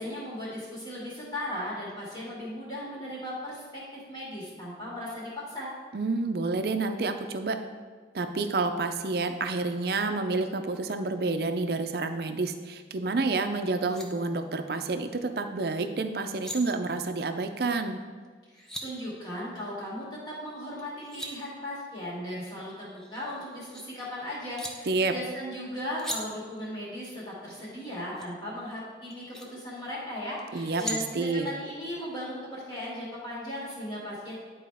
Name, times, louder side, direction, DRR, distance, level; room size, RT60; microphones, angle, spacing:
voice 1, 0.0-5.7 18.5-34.3, left 1 dB, 25° left, -7 dB, 2.2 m, -37 dB
voice 2, 5.9-7.6 8.1-18.0 24.9-25.1 30.5-31.5, right 3 dB, 60° right, 7 dB, 0.5 m, -29 dB
sound 1, 13.8-14.1 16.1-16.6 18.2-18.9 20.8-21.3 22.7-23.8 24.6-24.7 26.0-26.2 28.2-28.3 29.1-29.5 30.4-31.0, equal, 5° left, 0.5 m, -38 dB
10.5 x 4.1 x 3.5 m, 1.5 s
head